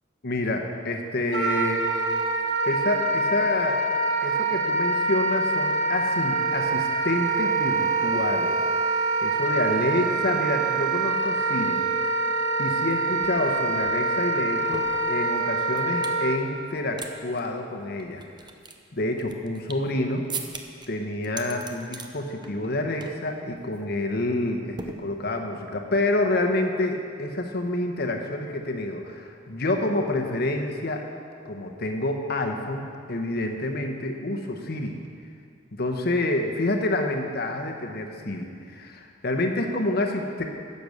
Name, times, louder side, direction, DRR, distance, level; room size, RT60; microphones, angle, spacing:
voice 1, 0.2-1.9 2.6-3.8 4.2-11.8 12.0-12.2 12.6-18.2 18.9-20.2 20.9-31.0 31.4-35.0 35.7-40.4, left 2 dB, 55° left, 3 dB, 1.1 m, -28 dB
Wind instrument woodwind instrument, 1.3-16.4, right 3 dB, 80° right, 0.9 m, -25 dB
sound 1, 12.9-13.0 13.2-16.2 16.6-17.1 17.4-17.5 18.0-19.9 20.3-20.9 21.2-22.1 22.4-22.7 23.0-23.3 23.6-23.8 24.8-25.5, right 4 dB, 25° right, 0.7 m, -40 dB
10.5 x 6.9 x 6.6 m, 2.3 s
head